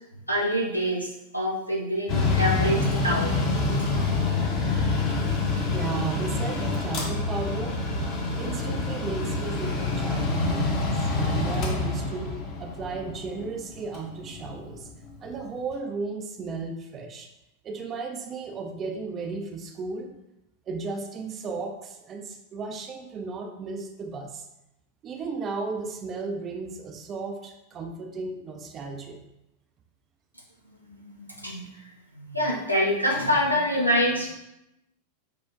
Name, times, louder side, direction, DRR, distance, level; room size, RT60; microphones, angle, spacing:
voice 1, 0.3-3.5 30.8-34.3, equal, 90° right, -3 dB, 0.7 m, -26 dB
Mechanical fan, 2.1-15.4, left 3 dB, 40° left, 0.7 m, -27 dB
voice 2, 5.7-7.8 8.4-14.9 15.2-17.3 17.6-20.1 20.7-24.4 25.0-29.2, right 4 dB, 30° right, 3 dB, 0.4 m, -35 dB
4.8 x 2.1 x 2.4 m, 0.89 s
figure-of-eight pair, 90°, 0 cm